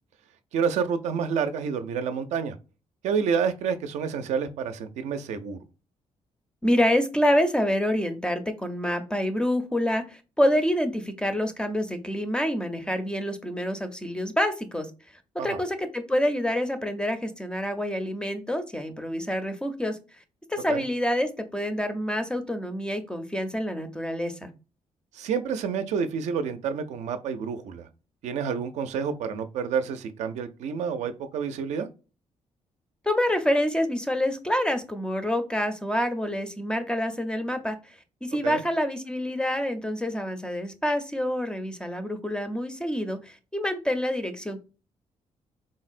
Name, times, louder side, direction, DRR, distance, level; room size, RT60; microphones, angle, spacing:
voice 1, 0.5-2.6 3.0-5.6 15.4-15.6 20.7-20.8 25.1-27.9 28.2-31.9 38.4-38.6, right 6 dB, 85° right, 0.4 m, -29 dB
voice 2, 6.6-14.9 15.4-20.0 20.5-24.5 33.0-37.8 38.2-44.6, equal, 10° left, 0.4 m, -27 dB
3.8 x 2.0 x 2.4 m
cardioid pair, 125°, 12 cm